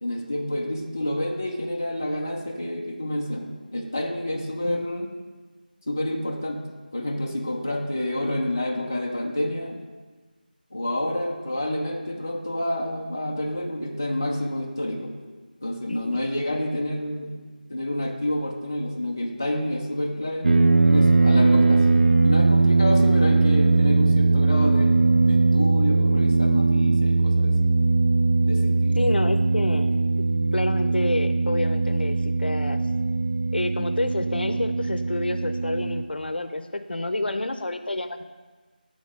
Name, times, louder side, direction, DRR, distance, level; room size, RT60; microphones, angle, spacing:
voice 1, 0.0-5.1 5.9-6.7 6.9-9.8 10.7-15.2 15.6-17.4 17.7-27.6 28.4-29.0, left 1 dB, 20° left, -1 dB, 0.3 m, -29 dB
sound 1, 20.4-36.0, right 3 dB, 85° right, 0.4 m, -20 dB
voice 2, 29.0-30.0 30.5-32.8 33.5-38.2, left 2 dB, 85° left, 9 dB, 0.5 m, -28 dB
7.0 x 3.9 x 4.9 m, 1.3 s
figure-of-eight pair, 175°, 5 cm